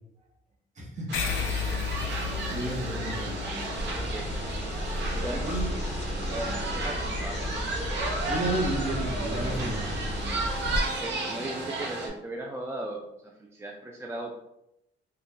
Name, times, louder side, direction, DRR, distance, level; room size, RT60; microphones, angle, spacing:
voice 1, 0.8-1.1 2.5-3.3 5.5-5.7 8.3-9.9, right 2 dB, 35° right, -2 dB, 1.0 m, -32 dB
sound 1, 1.1-6.0, left 6 dB, 90° left, 0.4 m, -34 dB
sound 2, 1.1-12.1, right 2 dB, 65° right, 0.7 m, -33 dB
voice 2, 2.3-3.3 3.9-4.4 5.1-5.5 6.2-7.6 11.0-13.0 13.4-14.3, right 1 dB, 15° right, 0 dB, 0.3 m, -39 dB
sound 3, 3.7-10.8, left 1 dB, 35° left, 0.6 m, -33 dB
2.6 x 2.2 x 3.5 m, 0.85 s
cardioid pair, 90°, 20 cm